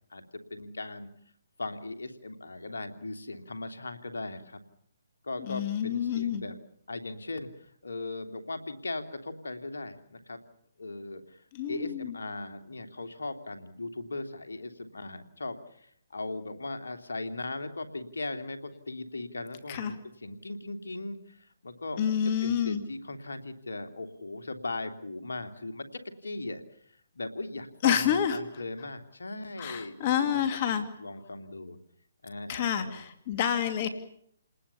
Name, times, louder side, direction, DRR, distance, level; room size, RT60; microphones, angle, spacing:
voice 1, 0.5-1.1 1.6-4.6 5.2-6.6 6.9-10.4 10.8-22.0 22.4-25.9 26.2-26.6 27.1-30.4 30.7-31.8 32.2-33.0, left 2 dB, 80° left, 8 dB, 2.9 m, -38 dB
voice 2, 5.4-6.4 11.5-12.2 19.7-19.9 22.0-22.8 27.8-28.4 29.6-30.9 32.5-33.9, left 9 dB, 40° left, 9 dB, 2.5 m, -28 dB
29.0 x 20.0 x 7.0 m, 0.66 s
hypercardioid pair, 145°, 0 cm